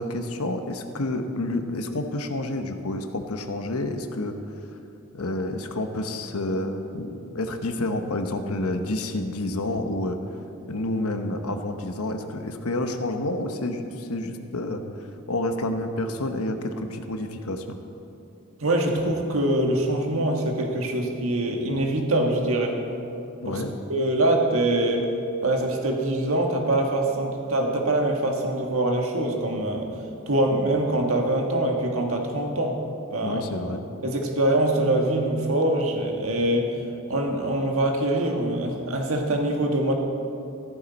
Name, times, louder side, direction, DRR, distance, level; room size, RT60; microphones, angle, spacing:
voice 1, 0.0-4.4 5.1-10.2 10.7-14.8 15.3-17.8 23.4-23.7 33.2-33.9, left 1 dB, 90° left, 6 dB, 1.0 m, -29 dB
voice 2, 18.6-22.8 23.5-23.6 23.9-25.1 25.4-29.9 30.3-32.8 33.1-33.4 34.0-36.7 37.1-39.9, right 1 dB, 75° right, 2 dB, 1.7 m, -24 dB
14.5 x 14.0 x 4.2 m, 2.7 s
head